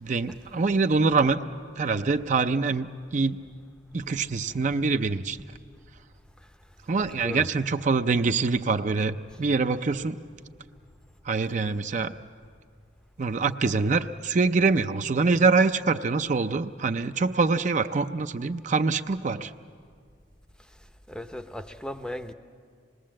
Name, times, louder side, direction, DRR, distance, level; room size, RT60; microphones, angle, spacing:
voice 1, 0.0-1.4 1.8-3.4 3.9-5.4 6.9-10.2 11.2-12.1 13.2-19.5, right 4 dB, 45° right, 0.5 m, -24 dB
voice 2, 7.0-7.5 21.1-22.3, left 1 dB, 5° left, 0.6 m, -37 dB
26.0 x 20.5 x 7.5 m
head